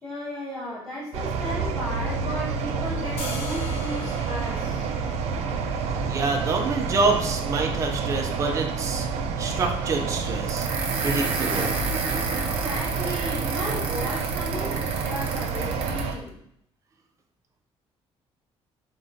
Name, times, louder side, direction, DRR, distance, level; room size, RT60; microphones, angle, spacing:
voice 1, 0.0-4.9 12.3-16.4, left 1 dB, 15° left, -12 dB, 1.2 m, -35 dB
sound 1, 1.1-16.1, right 5 dB, 85° right, 0.4 m, -29 dB
sound 2, 3.2-9.3, left 3 dB, 75° left, 0.8 m, -43 dB
voice 2, 6.1-9.1 9.4-10.7 11.0-11.8, right 3 dB, 30° right, 2 dB, 0.5 m, -26 dB
sound 3, 10.5-16.1, right 3 dB, 60° right, 0.8 m, -31 dB
3.8 x 3.6 x 2.7 m, 0.72 s
cardioid pair, 165°, 11 cm